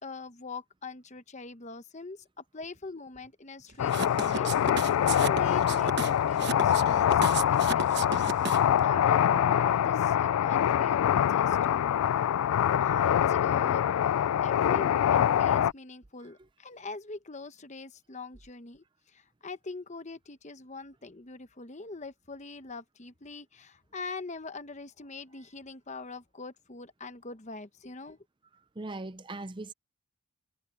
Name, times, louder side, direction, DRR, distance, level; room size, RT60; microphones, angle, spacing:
voice 1, 0.0-8.1 8.4-8.6 8.8-12.0 12.8-13.8 14.4-28.2, left 3 dB, 35° left, 0.9 m, -43 dB
sound 1, 3.8-15.7, left 9 dB, 85° left, 0.3 m, -24 dB
sound 2, 3.9-8.8, right 5 dB, 50° right, 1.2 m, -34 dB
voice 2, 28.8-29.7, right 2 dB, 20° right, 0.5 m, -39 dB
head